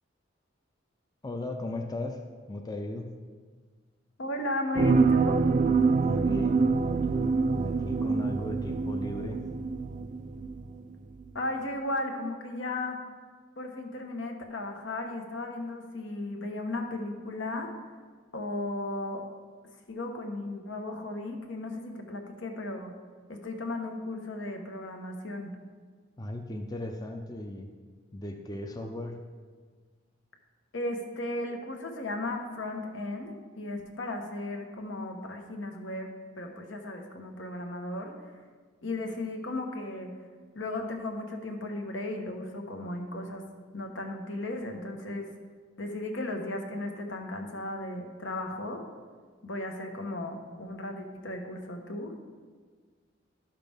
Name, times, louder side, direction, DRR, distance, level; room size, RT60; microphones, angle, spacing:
voice 1, 1.2-2.2 2.5-3.2 5.9-7.0 7.6-9.4 26.2-27.7 28.1-29.2, left 1 dB, 20° left, 3 dB, 0.5 m, -37 dB
voice 2, 4.2-5.4 11.3-13.0 13.6-17.7 18.3-19.2 19.9-22.9 23.3-25.5 30.7-38.1 38.8-40.1 40.5-43.4 43.7-45.3 45.8-48.8 49.4-52.1, left 2 dB, 75° left, 3 dB, 1.2 m, -35 dB
sound 1, 4.8-10.8 11.2-11.3, right 4 dB, 40° right, 0.3 m, -26 dB
12.0 x 5.8 x 3.5 m, 1.6 s
head